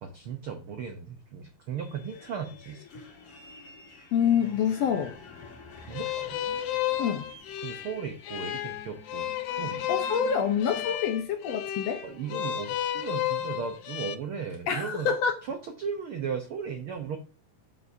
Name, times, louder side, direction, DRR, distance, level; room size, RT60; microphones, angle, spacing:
voice 1, 0.0-2.9 5.9-6.4 7.6-9.9 12.0-15.1 15.5-17.2, right 6 dB, 80° right, 1.2 m, -36 dB
sound 1, 1.8-10.9, left 4 dB, 50° left, 2.4 m, -49 dB
voice 2, 4.1-5.1 7.0-7.2 9.9-12.0 14.7-15.4, left 7 dB, 65° left, 1.8 m, -26 dB
sound 2, 5.9-14.2, left 11 dB, 85° left, 2.3 m, -32 dB
7.6 x 6.7 x 2.8 m
omnidirectional pair, 3.8 m